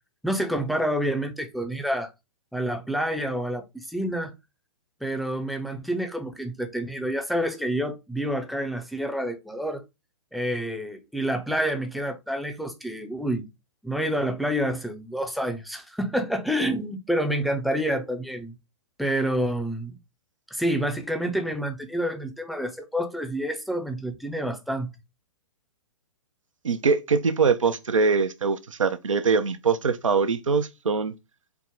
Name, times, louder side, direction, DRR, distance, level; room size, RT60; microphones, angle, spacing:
voice 1, 0.2-2.1 2.5-4.3 5.0-9.8 10.3-13.5 13.8-18.5 19.0-20.0 20.5-24.9, equal, ahead, 0.5 m, -28 dB
voice 2, 26.6-31.1, right 5 dB, 80° right, 0.5 m, -23 dB
4.6 x 2.0 x 3.6 m
figure-of-eight pair, 115°, 16 cm